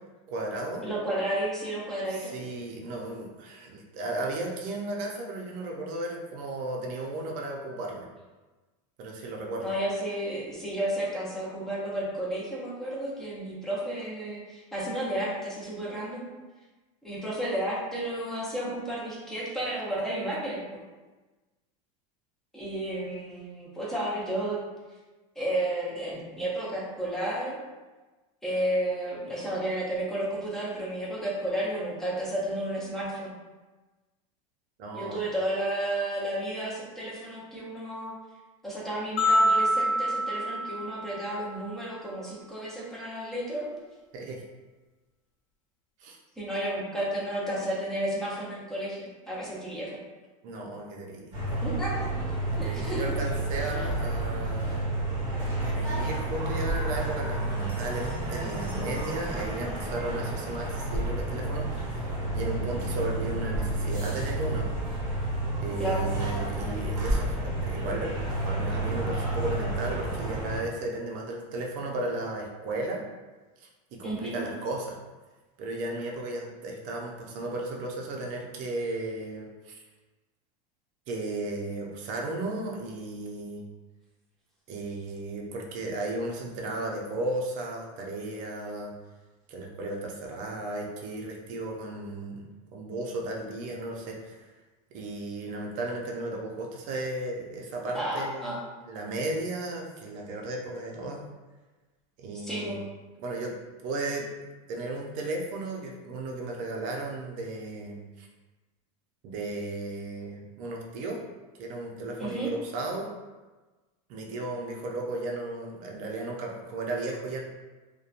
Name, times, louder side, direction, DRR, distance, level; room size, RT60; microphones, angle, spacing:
voice 1, 0.3-0.8 2.1-8.1 9.0-9.7 34.8-35.2 44.1-44.4 46.0-46.2 50.4-51.3 52.5-54.9 55.6-64.7 65.6-73.0 73.6-75.0 75.6-79.8 81.1-83.6 84.7-88.9 89.5-92.4 92.7-94.5 94.9-98.5 98.9-101.2 102.2-102.8 103.2-103.5 103.8-104.3 104.7-108.3 109.2-111.2 111.6-113.1 114.1-117.4, right 2 dB, 45° right, 0 dB, 0.5 m, -35 dB
voice 2, 0.8-2.3 9.6-16.2 17.0-20.8 22.5-24.6 25.4-27.6 28.4-33.3 34.9-38.1 38.6-43.7 46.4-50.0 51.6-52.1 52.6-53.0 53.7-53.9 65.8-66.0 74.0-74.3 97.9-98.6 102.4-102.8 112.2-112.5, right 1 dB, ahead, -6 dB, 0.6 m, -32 dB
sound 1, 39.2-41.5, equal, 70° left, 0.5 m, -26 dB
sound 2, 51.3-70.6, right 1 dB, 30° right, 1.4 m, -30 dB
2.8 x 2.2 x 2.4 m, 1.2 s
supercardioid pair, 145°, 18 cm